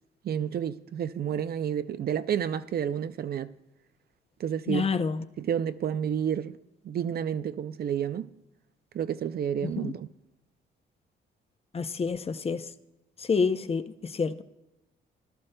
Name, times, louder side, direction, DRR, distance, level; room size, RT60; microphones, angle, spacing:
voice 1, 0.2-3.5 4.4-4.9 5.4-6.5 6.8-8.3 8.9-10.1, right 8 dB, 50° right, 0.5 m, -30 dB
voice 2, 4.7-5.2 9.6-9.9 11.7-12.6 13.2-14.4, left 5 dB, 30° left, 0.6 m, -28 dB
18.0 x 11.5 x 2.2 m
cardioid pair, 90°, 20 cm